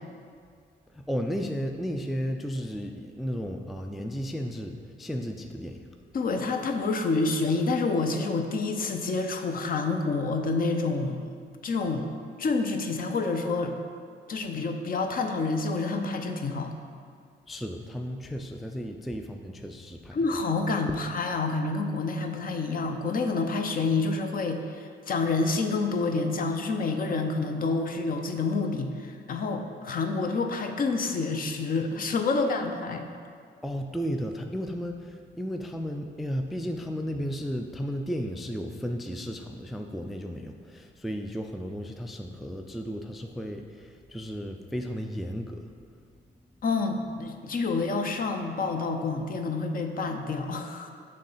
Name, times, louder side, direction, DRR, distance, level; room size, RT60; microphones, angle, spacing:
voice 1, 0.9-5.8 17.5-20.2 33.6-45.6, equal, ahead, 4 dB, 0.3 m, -34 dB
voice 2, 6.1-11.2 11.6-12.1 12.4-13.7 14.3-16.7 20.1-33.1 46.6-50.9, left 3 dB, 45° left, 5 dB, 0.6 m, -28 dB
6.5 x 3.2 x 5.5 m, 2.2 s
cardioid pair, 90°, 20 cm